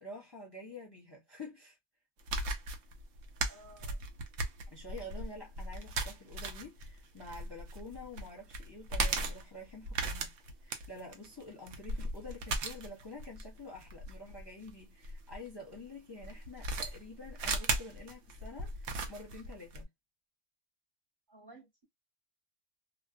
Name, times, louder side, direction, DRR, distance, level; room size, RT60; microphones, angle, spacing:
voice 1, 0.0-1.8 4.7-10.3 10.6-19.9, left 2 dB, 25° left, 0.8 m, -48 dB
sound 1, 2.2-15.4 16.2-19.8, right 2 dB, 75° right, 0.9 m, -37 dB
voice 2, 3.5-4.0 21.3-21.8, right 1 dB, 20° right, 1.2 m, -55 dB
2.5 x 2.3 x 2.4 m
omnidirectional pair, 1.2 m